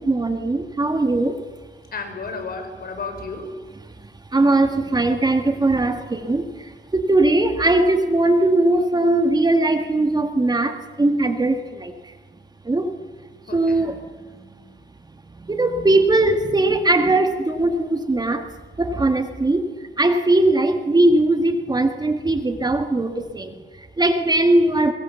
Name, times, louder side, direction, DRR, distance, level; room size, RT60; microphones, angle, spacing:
voice 1, 0.0-1.4 4.3-12.1 12.7-12.9 13.5-14.0 15.4-18.5 18.8-19.7 20.0-24.9, right 2 dB, 20° right, 7 dB, 1.9 m, -20 dB
voice 2, 1.9-3.5 13.5-13.9, left 4 dB, 50° left, 7 dB, 5.1 m, -32 dB
23.0 x 21.5 x 7.1 m, 1.4 s
cardioid pair, 90°, 20 cm